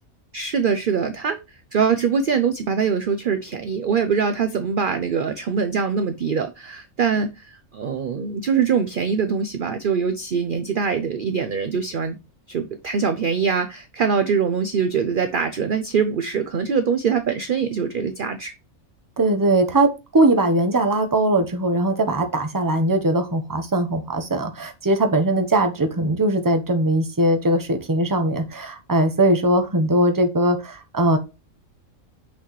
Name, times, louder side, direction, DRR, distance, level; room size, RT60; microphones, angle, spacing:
voice 1, 0.3-1.4 1.7-12.2 12.5-18.5, right 6 dB, 50° right, 9 dB, 0.6 m, -23 dB
voice 2, 19.2-31.2, right 1 dB, 15° right, 6 dB, 0.8 m, -20 dB
6.2 x 5.7 x 3.1 m, 0.27 s
omnidirectional pair, 1.5 m